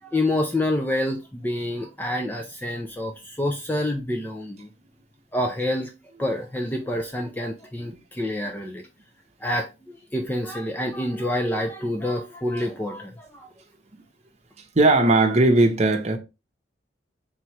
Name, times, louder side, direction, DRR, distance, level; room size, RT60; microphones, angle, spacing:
voice 1, 0.0-4.7 5.3-5.9 6.2-8.8 9.4-9.7 10.1-13.5, left 1 dB, 10° left, 0.5 m, -27 dB
voice 2, 14.7-16.2, right 2 dB, 40° right, 0.8 m, -18 dB
3.6 x 3.0 x 4.5 m
head